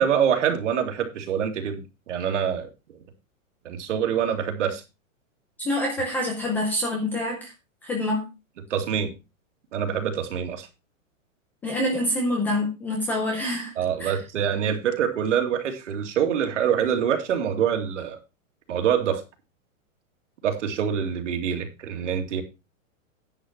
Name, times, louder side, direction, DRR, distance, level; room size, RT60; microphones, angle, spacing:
voice 1, 0.0-2.7 3.6-4.8 8.7-9.1 9.7-10.7 13.8-18.2 18.7-19.2 20.4-22.4, right 8 dB, 60° right, 5 dB, 2.6 m, -25 dB
voice 2, 5.6-7.5 7.8-8.2 11.6-13.7 14.0-14.1, left 1 dB, 5° left, 1 dB, 0.6 m, -26 dB
10.5 x 7.6 x 4.5 m, 0.27 s
supercardioid pair, 175°, 41 cm